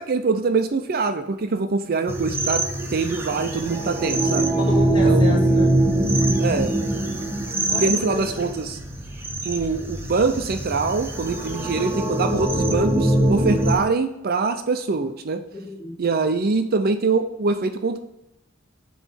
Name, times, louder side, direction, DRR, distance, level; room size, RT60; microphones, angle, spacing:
voice 1, 0.0-2.6 2.9-4.5 5.0-5.4 6.4-6.7 7.8-8.8 9.4-15.4 16.0-18.0, right 4 dB, 50° right, 8 dB, 0.5 m, -24 dB
sound 1, 2.1-13.7, right 1 dB, 10° right, 1.0 m, -23 dB
voice 2, 4.6-5.7 7.7-8.5 15.5-16.0, left 3 dB, 25° left, -6 dB, 2.6 m, -31 dB
8.9 x 3.1 x 6.2 m, 0.86 s
head